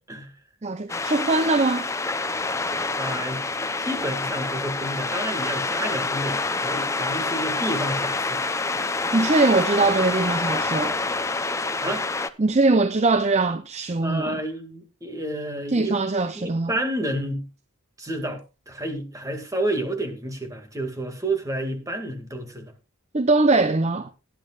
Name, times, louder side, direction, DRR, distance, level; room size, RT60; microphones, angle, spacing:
voice 1, 0.6-1.9 9.1-10.9 12.4-14.4 15.7-16.7 23.1-24.1, right 3 dB, 30° right, 0.6 m, -21 dB
sound 1, 0.9-12.3, left 3 dB, 15° left, 0.6 m, -27 dB
voice 2, 3.0-3.4 3.8-8.4 11.8-12.1 14.0-16.0 16.3-17.5 18.0-22.7, right 1 dB, 15° right, 2.1 m, -30 dB
18.5 x 10.5 x 2.4 m
head